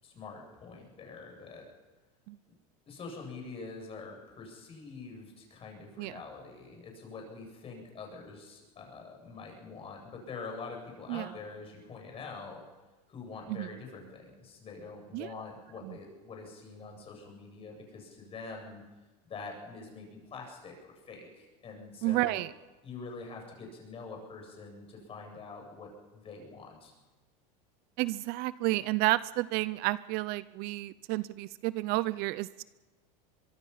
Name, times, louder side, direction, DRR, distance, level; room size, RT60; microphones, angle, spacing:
voice 1, 0.0-1.6 2.9-12.6 13.1-18.8 19.2-20.8 21.1-22.4 22.8-26.9, left 4 dB, 30° left, 2 dB, 7.8 m, -45 dB
voice 2, 22.0-22.5 28.0-32.6, right 19 dB, 50° right, 18 dB, 0.6 m, -31 dB
24.0 x 22.5 x 5.7 m, 1.2 s
supercardioid pair, 135°, 20 cm